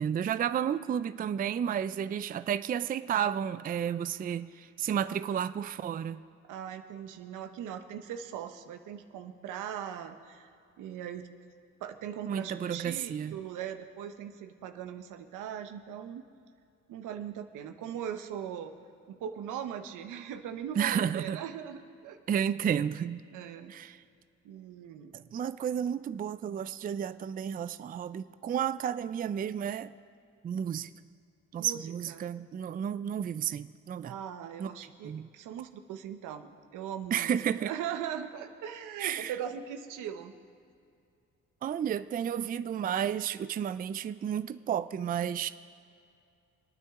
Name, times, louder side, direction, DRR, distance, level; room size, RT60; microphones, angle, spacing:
voice 1, 0.0-6.2 12.3-13.4 20.8-21.4 22.3-23.2 23.7-24.0 25.1-29.9 30.4-30.9 31.5-34.1 34.6-34.7 35.0-35.3 37.1-37.7 39.0-39.3 41.6-45.5, right 9 dB, 30° right, 0.4 m, -32 dB
voice 2, 5.1-5.5 6.4-10.5 10.8-11.3 11.8-16.2 16.9-18.7 19.1-22.2 23.3-23.7 24.4-25.1 31.6-32.3 34.1-40.3, right 9 dB, 90° right, 1.0 m, -40 dB
27.0 x 9.2 x 3.6 m
cardioid pair, 90°, 30 cm